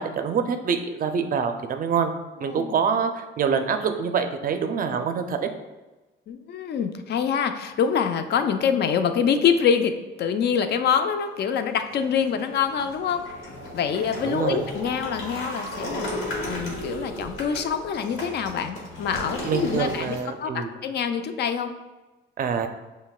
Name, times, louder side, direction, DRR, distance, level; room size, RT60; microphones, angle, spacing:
voice 1, 0.0-2.1 2.4-5.4 14.2-14.6 19.4-20.7 22.4-22.7, right 6 dB, 45° right, 7 dB, 0.4 m, -25 dB
voice 2, 6.3-13.3 13.7-16.1 16.4-21.7, left 7 dB, 60° left, 8 dB, 0.4 m, -25 dB
sound 1, 11.6-20.2, left 1 dB, 85° left, 1.0 m, -35 dB
5.6 x 2.1 x 2.4 m, 1.1 s
cardioid pair, 90°, 20 cm